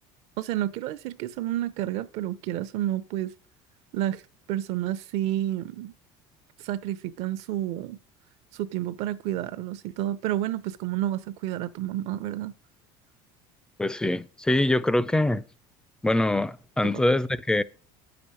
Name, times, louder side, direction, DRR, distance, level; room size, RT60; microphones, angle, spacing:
voice 1, 0.4-3.3 3.9-4.2 4.5-5.9 6.6-8.0 8.5-12.5, right 13 dB, 65° right, 0.8 m, -30 dB
voice 2, 13.8-15.4 16.0-17.6, left 1 dB, 5° left, 0.5 m, -24 dB
9.5 x 7.0 x 6.3 m
cardioid pair, 140°, 11 cm